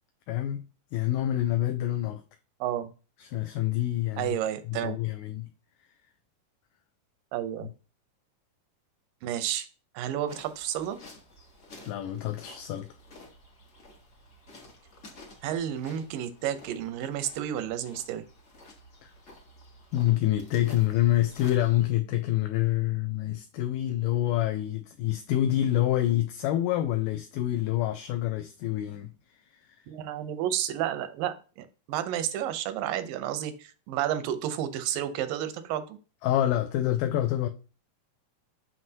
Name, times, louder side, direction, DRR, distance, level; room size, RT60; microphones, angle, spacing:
voice 1, 0.3-0.6 0.9-2.2 3.2-4.4 4.7-5.5 11.9-12.9 19.0-19.1 19.9-29.1 29.5-29.8 36.2-37.5, left 13 dB, 80° left, 2.1 m, -27 dB
voice 2, 2.6-2.9 4.2-5.0 7.3-7.7 9.2-9.7 9.9-11.0 15.4-18.2 29.9-36.0, right 11 dB, 85° right, 2.4 m, -31 dB
sound 1, 10.2-21.9, left 2 dB, 65° left, 0.7 m, -52 dB
7.5 x 6.1 x 2.8 m
omnidirectional pair, 3.8 m